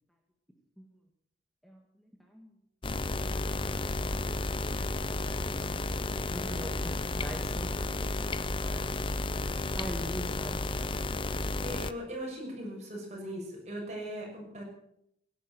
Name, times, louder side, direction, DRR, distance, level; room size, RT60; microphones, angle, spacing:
sound 1, 2.8-11.9, left 2 dB, 30° left, 0.7 m, -32 dB
voice 1, 6.3-7.7 8.6-8.8 9.8-10.6, equal, ahead, 1 dB, 2.0 m, -41 dB
voice 2, 11.6-14.6, equal, 40° right, 0 dB, 6.3 m, -39 dB
17.0 x 11.0 x 7.6 m, 0.76 s
head